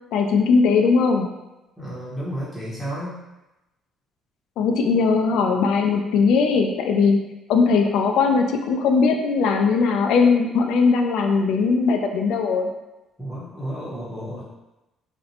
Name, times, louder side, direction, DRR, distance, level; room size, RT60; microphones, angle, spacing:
voice 1, 0.1-1.3 4.6-7.2 7.5-12.7, left 5 dB, 75° left, 4 dB, 0.3 m, -19 dB
voice 2, 1.8-3.2 13.2-14.4, equal, ahead, -10 dB, 0.7 m, -32 dB
2.6 x 2.0 x 2.7 m, 0.99 s
cardioid pair, 145°, 0 cm